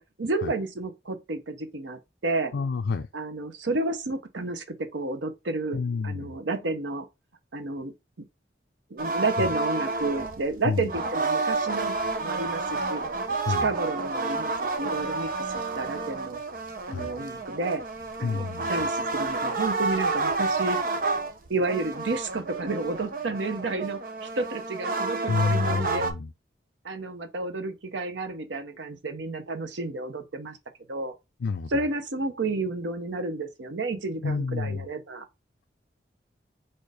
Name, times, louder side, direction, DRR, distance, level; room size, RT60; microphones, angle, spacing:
voice 1, 0.2-2.5 3.1-7.1 7.5-7.9 8.9-13.0 13.6-14.5 14.8-16.4 16.9-17.8 18.2-20.8 21.5-26.1 26.8-30.6 30.9-31.1 31.7-35.2, right 3 dB, 90° right, 0.8 m, -31 dB
voice 2, 2.5-3.1 5.7-6.3 10.6-10.9 13.4-13.7 16.9-17.1 18.2-18.7 25.3-26.3 31.4-31.7 34.2-34.9, left 4 dB, 85° left, 0.4 m, -28 dB
sound 1, 9.0-26.1, right 3 dB, 50° right, 0.6 m, -30 dB
4.4 x 2.5 x 4.7 m
head